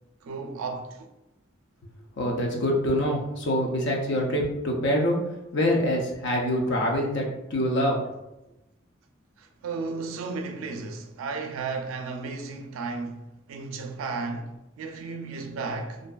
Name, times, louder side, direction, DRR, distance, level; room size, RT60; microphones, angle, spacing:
voice 1, 0.2-1.1 9.4-16.1, right 4 dB, 90° right, 0.3 m, -34 dB
voice 2, 2.2-5.2 5.5-8.0, equal, 60° left, 0.5 m, -25 dB
2.5 x 2.2 x 2.3 m
head